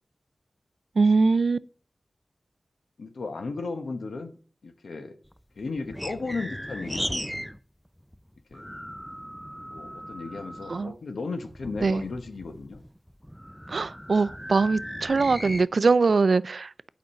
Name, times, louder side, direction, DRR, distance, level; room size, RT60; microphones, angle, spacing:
voice 1, 1.0-1.6 10.7-10.9 11.8-12.0 13.7-16.7, right 4 dB, 70° right, 0.4 m, -22 dB
voice 2, 3.0-4.4 4.6-5.1 5.6-7.4 8.5-8.6 9.7-12.8, left 3 dB, 85° left, 0.9 m, -35 dB
sound 1, 5.3-7.6 7.9-11.0 11.4-15.7, equal, ahead, 0.4 m, -37 dB
8.6 x 5.1 x 6.4 m
wide cardioid pair, 60°, 0 cm